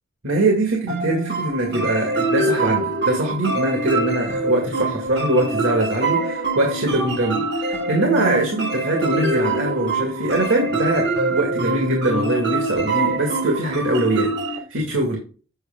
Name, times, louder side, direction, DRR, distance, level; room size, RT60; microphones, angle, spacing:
voice 1, 0.2-15.2, right 1 dB, 75° right, 1 dB, 2.1 m, -22 dB
sound 1, 0.9-14.6, right 2 dB, 60° right, 1.3 m, -24 dB
7.9 x 5.7 x 3.6 m, 0.37 s
head